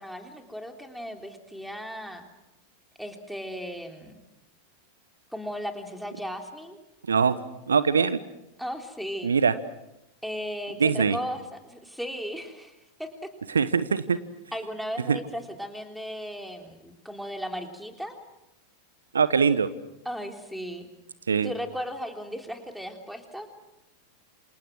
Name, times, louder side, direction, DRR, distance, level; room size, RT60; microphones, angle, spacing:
voice 1, 0.0-2.3 3.0-4.2 5.3-6.8 8.6-9.3 10.2-13.1 14.5-18.1 20.0-20.9 21.4-23.5, equal, ahead, 5 dB, 3.5 m, -36 dB
voice 2, 7.1-7.4 7.7-8.2 9.2-9.5 10.8-11.2 13.5-14.2 15.1-15.2 19.1-19.7 21.3-21.5, right 6 dB, 70° right, 15 dB, 1.1 m, -22 dB
28.5 x 27.5 x 6.3 m, 0.90 s
figure-of-eight pair, 90°, 0 cm